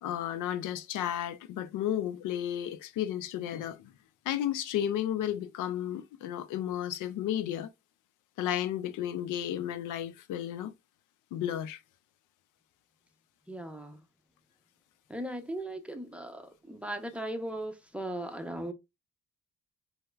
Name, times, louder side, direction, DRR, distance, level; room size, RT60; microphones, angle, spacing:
voice 1, 0.0-3.9 4.3-7.7 8.4-10.7 11.3-11.8, left 11 dB, 85° left, 0.5 m, -33 dB
voice 2, 13.5-14.0 15.1-18.7, right 1 dB, 5° right, 0.5 m, -38 dB
4.3 x 2.0 x 2.2 m
cardioid pair, 90°, 30 cm